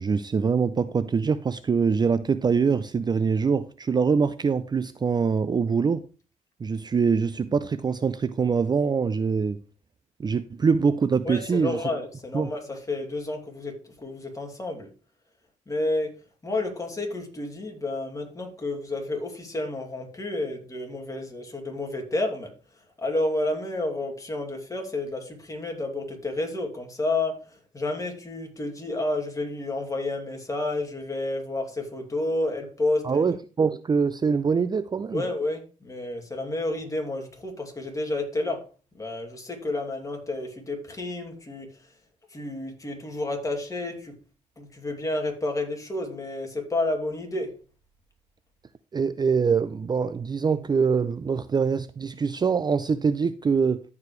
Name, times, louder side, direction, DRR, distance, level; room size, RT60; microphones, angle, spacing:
voice 1, 0.0-6.0 6.6-9.6 10.2-11.8 12.3-12.5 33.0-35.2 48.9-53.8, right 5 dB, 30° right, 0.5 m, -24 dB
voice 2, 11.3-14.9 15.7-16.2 16.4-22.5 23.0-33.3 35.1-38.6 38.9-41.7 42.3-44.1 44.6-47.5, left 2 dB, 25° left, 2.6 m, -30 dB
14.5 x 4.9 x 3.2 m
cardioid pair, 75°, 14 cm